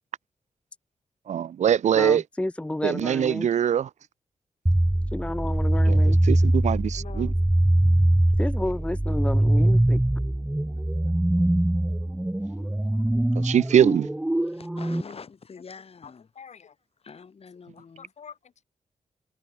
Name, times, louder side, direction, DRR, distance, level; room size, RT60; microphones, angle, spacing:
voice 1, 1.3-2.2 2.8-3.9 5.9-7.3 13.4-14.1, right 9 dB, 80° right, 0.6 m, -23 dB
voice 2, 1.9-3.5 5.1-6.2 8.4-10.0, left 1 dB, 10° left, 0.7 m, -31 dB
sound 1, 4.7-15.0, right 1 dB, 10° right, 1.1 m, -22 dB
voice 3, 6.9-7.4 10.8-11.5 16.0-16.8 17.1-17.3 17.7-18.6, left 7 dB, 70° left, 3.1 m, -48 dB
voice 4, 14.4-16.3 17.0-18.1, left 5 dB, 55° left, 4.4 m, -45 dB
wide cardioid pair, 100°, 12 cm